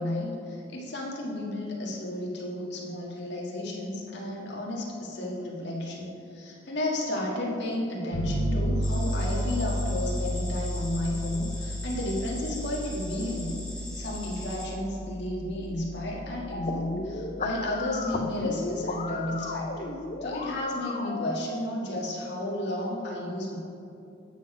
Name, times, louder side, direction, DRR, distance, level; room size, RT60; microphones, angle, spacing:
voice 1, 0.0-19.9 20.2-23.6, left 1 dB, 65° left, -3 dB, 1.8 m, -32 dB
sound 1, 8.1-17.4, equal, 80° left, 1.7 m, -32 dB
sound 2, 8.8-14.7, left 1 dB, 5° left, 1.7 m, -42 dB
sound 3, 16.5-21.5, left 3 dB, 40° left, 0.6 m, -35 dB
9.2 x 6.6 x 5.0 m, 2.8 s
head